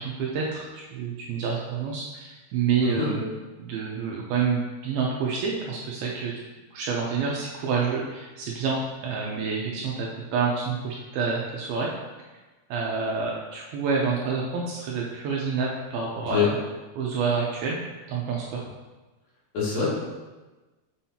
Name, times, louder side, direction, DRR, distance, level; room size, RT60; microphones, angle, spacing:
voice 1, 0.0-3.2 3.6-6.4 6.7-11.9 12.7-16.4 17.0-17.8 18.1-18.6, right 5 dB, 75° right, -2 dB, 2.4 m, -28 dB
voice 2, 19.5-19.9, left 6 dB, 60° left, -9 dB, 3.8 m, -24 dB
7.4 x 6.1 x 2.8 m, 1.2 s
omnidirectional pair, 4.8 m